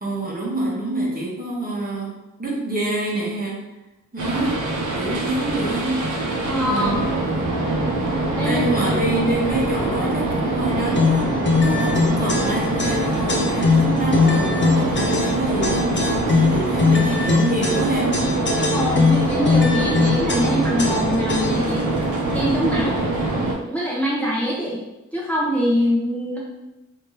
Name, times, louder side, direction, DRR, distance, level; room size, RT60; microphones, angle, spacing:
voice 1, 0.0-2.1 2.4-3.6 4.1-4.6 5.0-6.1 6.7-7.1 8.4-18.3, right 1 dB, 25° right, -4 dB, 1.1 m, -26 dB
sound 1, 4.2-23.5, right 2 dB, 65° right, 0.8 m, -23 dB
voice 2, 6.5-7.0 8.4-8.7 18.7-22.0 22.3-23.1 23.6-24.8 25.1-26.4, equal, 5° left, -6 dB, 0.9 m, -23 dB
sound 2, 10.9-21.8, left 4 dB, 35° left, 0.5 m, -21 dB
3.4 x 2.8 x 3.0 m, 1.0 s
cardioid pair, 70°, 32 cm